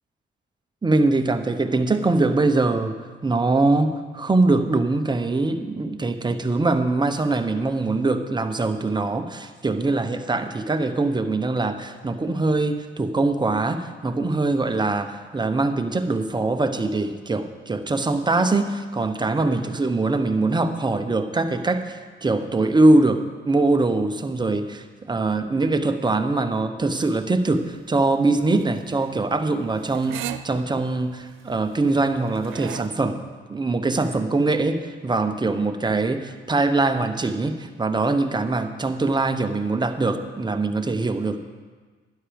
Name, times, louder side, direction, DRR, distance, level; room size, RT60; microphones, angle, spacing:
voice 1, 0.8-2.9 3.2-33.2 33.5-41.4, right 2 dB, 20° right, 7 dB, 1.0 m, -22 dB
sound 1, 27.5-32.9, right 12 dB, 90° right, 0.5 m, -38 dB
12.0 x 10.5 x 5.2 m, 1.4 s
cardioid pair, 90°, 20 cm